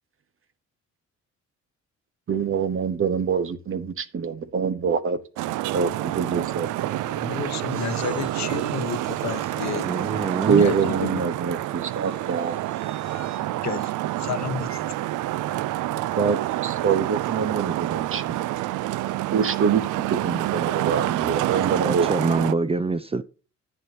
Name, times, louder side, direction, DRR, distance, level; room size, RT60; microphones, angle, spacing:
voice 1, 2.3-5.2 5.7-7.1 10.5-12.6 16.2-18.5 19.3-22.4, right 6 dB, 45° right, 1.2 m, -25 dB
Traffic noise roadway noise, 5.4-22.5, right 15 dB, 80° right, 0.5 m, -28 dB
voice 2, 7.1-9.9 10.6-11.3 13.6-14.8, left 9 dB, 65° left, 1.1 m, -31 dB
sound 1, 7.7-11.2 11.6-13.4, right 3 dB, 65° right, 2.7 m, -49 dB
voice 3, 9.7-10.7 14.7-14.8 21.8-23.2, right 3 dB, 20° right, 0.6 m, -26 dB
10.5 x 9.3 x 2.8 m
cardioid pair, 90°, 30 cm